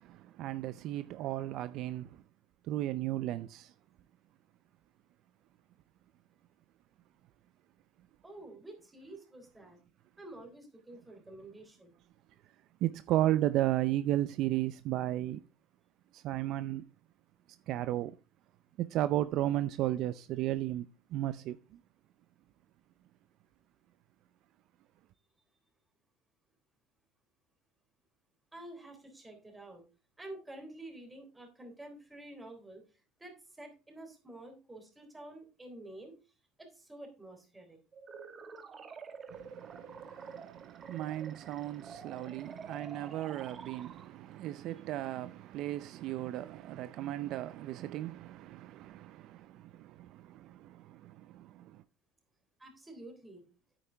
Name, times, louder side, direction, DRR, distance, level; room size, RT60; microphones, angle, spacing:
voice 1, 0.0-2.2 2.7-3.7 12.8-15.4 16.1-16.9 17.7-18.2 18.8-20.9 21.1-21.6 39.3-51.8, right 14 dB, 55° right, 0.5 m, -34 dB
voice 2, 8.2-9.8 10.2-11.9 28.5-29.8 30.2-36.1 36.6-37.8 52.6-53.4, right 1 dB, 10° right, 3.6 m, -49 dB
sound 1, 37.9-44.4, right 5 dB, 30° right, 1.3 m, -48 dB
9.1 x 8.7 x 3.4 m
supercardioid pair, 125°, 0 cm